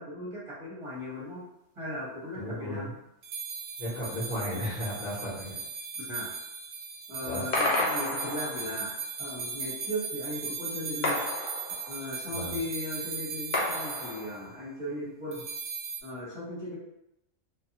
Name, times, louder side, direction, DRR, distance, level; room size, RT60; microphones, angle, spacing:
voice 1, 0.0-1.4 1.8-2.9 6.0-6.3 7.1-8.9 9.2-11.2 11.9-15.4 16.0-16.8, left 1 dB, 25° right, -8 dB, 0.9 m, -37 dB
voice 2, 2.3-3.0 3.8-5.5 7.2-7.4 12.3-12.6, left 1 dB, 35° left, -6 dB, 0.9 m, -34 dB
sound 1, 3.2-14.3 15.3-16.0, right 5 dB, 65° right, 0.8 m, -37 dB
sound 2, 7.5-8.9 11.0-12.2 13.5-14.7, left 2 dB, 60° left, 0.5 m, -31 dB
2.5 x 2.2 x 2.8 m, 0.85 s
omnidirectional pair, 1.3 m